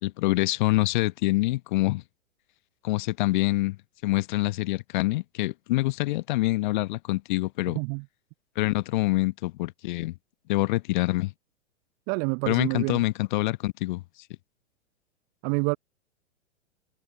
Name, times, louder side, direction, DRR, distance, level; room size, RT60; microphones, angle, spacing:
voice 1, 0.0-2.0 2.8-3.8 4.0-7.8 8.6-10.1 10.5-11.3 12.5-14.0, left 19 dB, 40° left, 1.0 m, -26 dB
voice 2, 7.7-8.0 12.1-13.0 15.4-15.8, right 37 dB, 25° right, 0.6 m, -27 dB
figure-of-eight pair, 110°, 39 cm